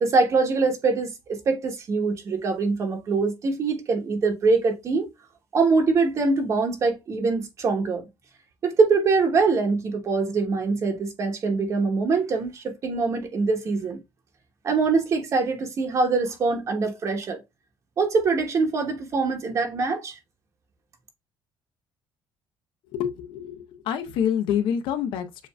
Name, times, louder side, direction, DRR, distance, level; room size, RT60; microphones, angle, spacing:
voice 1, 0.0-5.1 5.5-8.1 8.6-14.0 14.6-17.4 18.0-20.2, right 4 dB, 35° right, 1.0 m, -23 dB
voice 2, 22.9-25.5, left 9 dB, 75° left, 0.7 m, -27 dB
7.2 x 2.6 x 2.2 m
cardioid pair, 155°, 8 cm